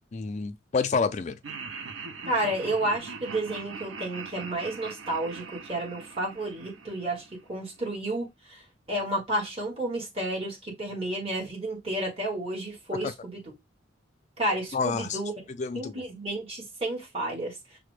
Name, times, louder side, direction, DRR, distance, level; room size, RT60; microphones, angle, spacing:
voice 1, 0.1-1.4 12.9-13.1 14.7-15.2 15.6-16.1, left 4 dB, 35° left, 0.3 m, -29 dB
Laughter, 1.4-7.6, right 5 dB, 75° right, 0.5 m, -41 dB
voice 2, 2.3-7.2 7.5-8.6 8.9-13.4 14.4-15.3 15.7-17.5, right 1 dB, 30° right, 1.3 m, -31 dB
5.8 x 2.1 x 3.1 m
head